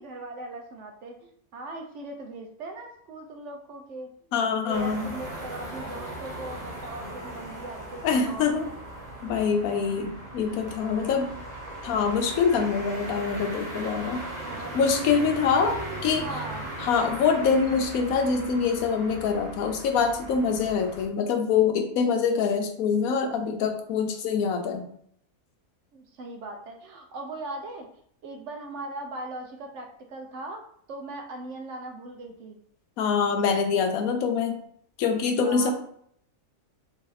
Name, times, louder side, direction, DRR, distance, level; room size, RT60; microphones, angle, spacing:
voice 1, 0.0-4.1 4.6-8.7 14.4-14.7 15.3-16.7 25.9-27.9 28.2-30.6 30.9-32.6 35.4-35.7, right 2 dB, 65° right, 3 dB, 0.8 m, -39 dB
voice 2, 4.3-5.1 8.0-8.7 9.2-11.3 11.8-14.2 14.7-15.7 16.0-16.2 16.8-24.9 33.0-34.6 35.0-35.7, left 5 dB, 80° left, 4 dB, 1.1 m, -25 dB
sound 1, 4.7-21.0, right 1 dB, 30° right, 1.1 m, -38 dB
3.1 x 2.6 x 3.9 m, 0.66 s
omnidirectional pair, 1.5 m